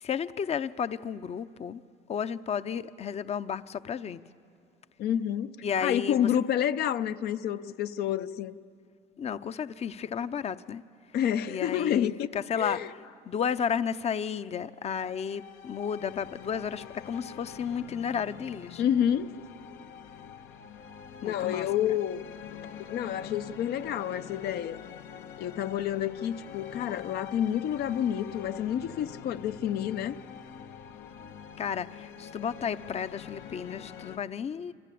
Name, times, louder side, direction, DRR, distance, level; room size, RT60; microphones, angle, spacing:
voice 1, 0.0-1.8 2.1-4.2 5.6-6.2 9.2-10.8 11.5-13.0 13.3-18.8 21.2-22.0 31.6-34.7, left 7 dB, 40° left, 0.7 m, -33 dB
voice 2, 5.0-5.5 5.8-8.6 11.1-12.3 12.6-12.9 18.8-19.3 21.2-22.3 22.9-24.8 25.4-30.2, left 10 dB, 70° left, 0.7 m, -29 dB
sound 1, 14.9-34.2, left 8 dB, 85° left, 1.3 m, -45 dB
27.5 x 24.5 x 8.5 m
cardioid pair, 110°, 17 cm